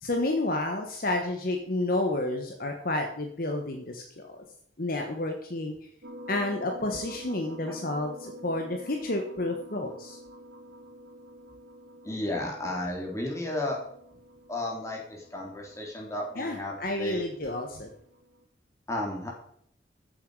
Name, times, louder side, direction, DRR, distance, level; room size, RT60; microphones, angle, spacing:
voice 1, 0.0-4.4 4.8-5.8 6.3-10.2 16.4-17.9, left 2 dB, 50° left, 3 dB, 1.4 m, -30 dB
sound 1, 6.0-18.4, equal, 70° right, 2.6 m, -48 dB
voice 2, 12.0-13.8 14.5-17.3 18.9-19.3, left 1 dB, 15° left, -2 dB, 3.3 m, -33 dB
14.5 x 8.1 x 4.9 m, 0.66 s
head